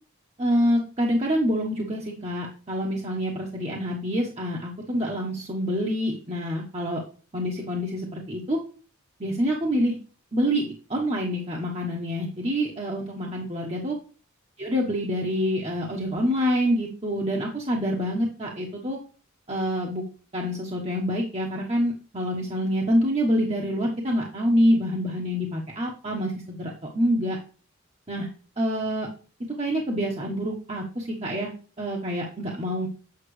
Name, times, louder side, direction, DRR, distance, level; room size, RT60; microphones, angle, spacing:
voice 1, 0.4-7.0 7.3-8.6 9.2-10.0 10.3-14.0 14.6-19.0 19.5-20.0 20.3-27.4 28.1-28.3 28.6-29.1 29.6-31.5 31.8-32.9, equal, 30° right, -1 dB, 1.2 m, -26 dB
8.2 x 5.9 x 3.2 m, 0.38 s
head